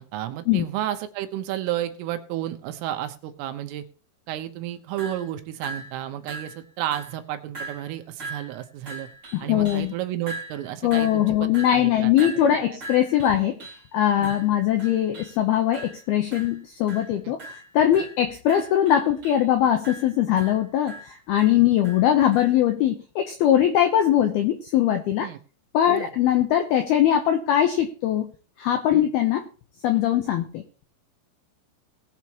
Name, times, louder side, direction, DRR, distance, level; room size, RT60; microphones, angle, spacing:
voice 1, 0.0-3.9 4.3-9.1 9.4-12.3 12.7-12.8 14.2-14.3 17.2-17.3 21.5-21.6 25.2-25.4 25.9-26.1 28.9-29.1, right 12 dB, 85° right, 8 dB, 3.7 m, -32 dB
sound 1, 5.0-5.3 5.6-6.0 6.3-6.6 6.9-7.2 7.5-9.9 10.3-13.9 14.2-15.4 15.7-16.1 16.3-16.6 16.9-17.1 17.4-19.5 19.8-22.6, right 2 dB, 20° right, 2.9 m, -40 dB
voice 2, 9.3-9.9 10.8-13.6 13.9-25.3 25.7-28.3 28.6-29.4 29.8-30.6, left 11 dB, 90° left, 6 dB, 2.2 m, -21 dB
19.5 x 8.3 x 3.0 m, 0.37 s
omnidirectional pair, 5.7 m